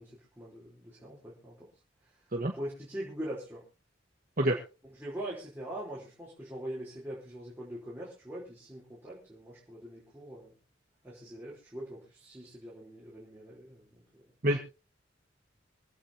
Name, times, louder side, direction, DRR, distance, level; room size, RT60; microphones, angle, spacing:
voice 1, 0.0-1.7 2.5-3.6 4.8-10.5 11.0-14.0, right 1 dB, 10° right, -7 dB, 3.9 m, -42 dB
voice 2, 2.3-2.5 4.4-4.6 14.4-14.6, right 1 dB, 45° right, 1 dB, 1.5 m, -26 dB
25.5 x 8.7 x 2.8 m, 0.33 s
head